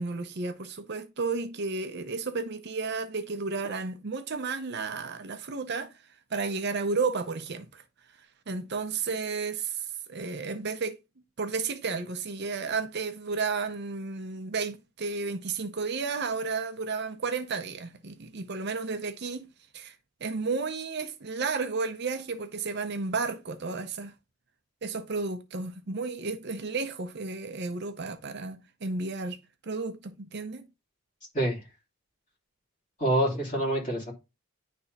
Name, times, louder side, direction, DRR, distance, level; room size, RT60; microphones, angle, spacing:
voice 1, 0.0-6.0 6.3-7.8 8.5-11.0 11.4-19.5 19.7-20.0 20.2-24.1 24.8-30.7, right 4 dB, 50° right, 0.7 m, -32 dB
voice 2, 33.0-34.1, right 1 dB, 35° left, 3.1 m, -26 dB
9.9 x 3.4 x 4.0 m
head